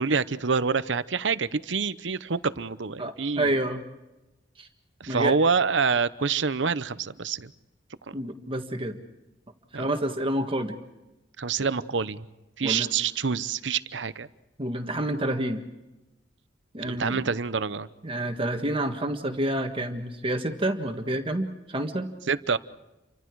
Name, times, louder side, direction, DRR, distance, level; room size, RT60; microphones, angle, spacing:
voice 1, 0.0-3.6 5.0-7.5 9.7-9.9 11.4-12.2 12.6-14.3 16.8-17.9 22.3-22.6, right 5 dB, 75° right, 15 dB, 0.9 m, -26 dB
voice 2, 3.0-3.8 4.6-4.7 5.1-5.3 8.1-9.0 9.7-10.8 12.6-12.9 14.6-15.6 16.7-17.2 18.0-22.1, right 1 dB, 30° right, 5 dB, 1.7 m, -28 dB
30.0 x 25.0 x 4.8 m, 1.0 s
head